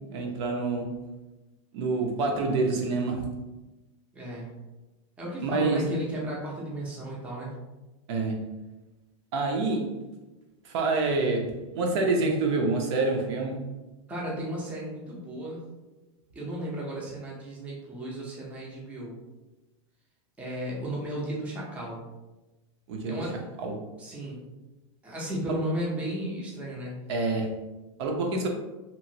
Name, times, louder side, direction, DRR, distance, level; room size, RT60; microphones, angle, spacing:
voice 1, 0.1-0.9 1.7-3.3 5.4-5.8 8.1-8.4 9.3-9.9 10.6-13.6 22.9-23.2 23.6-23.8 25.5-25.6 27.1-27.5 28.0-28.5, right 3 dB, 55° right, 2 dB, 0.5 m, -27 dB
voice 2, 4.1-4.6 5.2-7.5 14.1-15.6 16.3-19.2 20.4-22.0 23.0-23.4 24.0-24.4 25.0-26.9, right 1 dB, 5° right, -5 dB, 0.5 m, -34 dB
2.9 x 2.5 x 2.7 m, 1.1 s
supercardioid pair, 155°, 17 cm